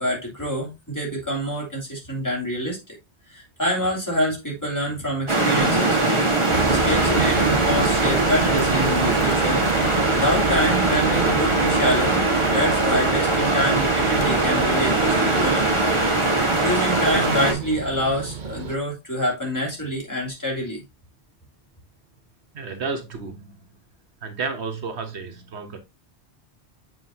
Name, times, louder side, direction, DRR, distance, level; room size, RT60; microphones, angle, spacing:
voice 1, 0.0-2.8 3.3-6.0 6.6-9.6 10.1-12.2 12.5-15.8 16.6-20.8, equal, 15° left, 3.1 m, -26 dB
sound 1, 5.3-17.5, right 2 dB, 25° right, 1.4 m, -21 dB
sound 2, 6.5-18.8, right 6 dB, 50° right, 0.8 m, -30 dB
voice 2, 22.5-23.5 24.2-25.8, right 4 dB, 75° right, 1.3 m, -31 dB
7.7 x 5.4 x 2.8 m
omnidirectional pair, 1.1 m